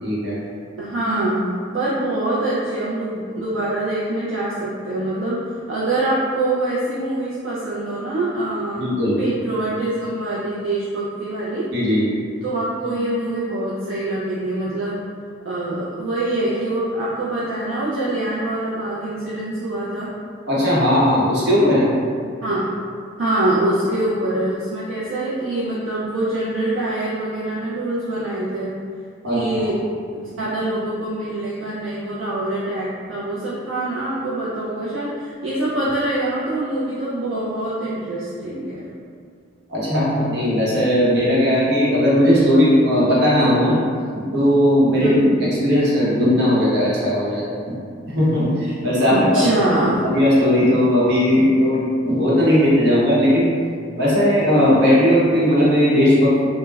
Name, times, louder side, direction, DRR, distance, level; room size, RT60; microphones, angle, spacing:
voice 1, 0.0-0.4 8.7-9.2 11.7-12.0 20.5-21.9 29.2-29.4 39.7-43.8 44.1-45.1 45.5-47.8 48.1-49.4 50.0-51.8 52.1-53.5 54.0-56.5, equal, 55° right, -8 dB, 0.8 m, -17 dB
voice 2, 0.8-1.4 1.7-8.8 9.2-11.7 12.4-15.0 15.4-20.1 22.4-22.7 23.2-28.8 29.3-29.8 30.1-38.8 45.0-45.3 49.1-50.0, right 1 dB, 70° right, -8 dB, 0.4 m, -24 dB
2.2 x 2.0 x 3.2 m, 2.2 s
head